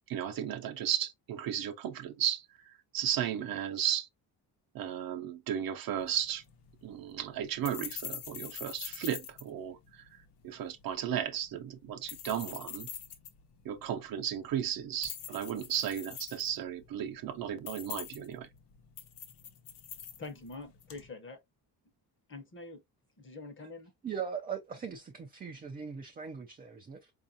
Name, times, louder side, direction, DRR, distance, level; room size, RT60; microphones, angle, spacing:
voice 1, 0.0-4.1 4.7-6.4 6.8-10.2 10.4-12.9 13.6-18.5, right 10 dB, 60° right, 0.7 m, -35 dB
sound 1, 6.0-21.1, left 9 dB, 80° left, 0.9 m, -46 dB
voice 2, 20.2-21.4 22.3-22.8 23.2-23.9, left 3 dB, 30° left, 0.9 m, -45 dB
voice 3, 24.0-27.1, right 7 dB, 25° right, 0.4 m, -40 dB
4.5 x 2.6 x 2.6 m
cardioid pair, 170°, 40 cm